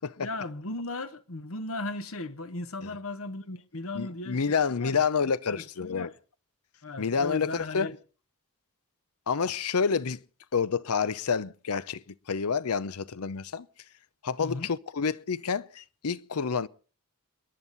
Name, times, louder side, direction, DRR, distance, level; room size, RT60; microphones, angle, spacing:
voice 1, 0.2-5.0 5.5-6.1 6.8-8.0 14.4-14.7, left 2 dB, 70° left, 1.1 m, -37 dB
voice 2, 3.9-6.1 7.0-7.9 9.3-10.2 10.5-13.7 14.2-16.7, left 5 dB, 85° left, 0.7 m, -29 dB
29.0 x 11.0 x 4.0 m
head